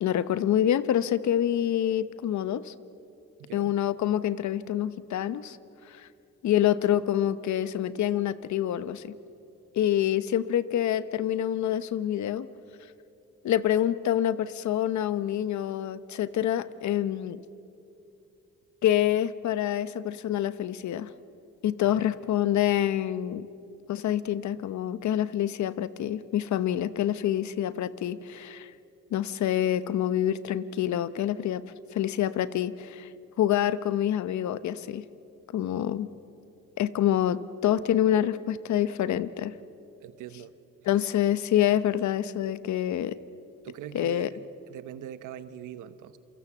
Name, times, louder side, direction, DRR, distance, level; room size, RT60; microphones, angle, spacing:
voice 1, 0.0-2.7 3.5-5.6 5.9-6.1 6.4-9.1 9.7-12.5 13.4-17.4 18.8-21.1 21.6-23.5 23.9-28.7 29.1-33.1 33.4-35.0 35.5-36.1 36.8-39.5 40.9-43.2 43.9-44.3, left 11 dB, 70° left, 15 dB, 1.0 m, -26 dB
voice 2, 3.4-3.7 21.8-22.1 40.0-40.5 40.9-41.1 43.6-44.4 44.7-46.2, right 11 dB, 90° right, 13 dB, 1.2 m, -42 dB
27.5 x 24.0 x 7.3 m, 2.7 s
cardioid pair, 90°, 30 cm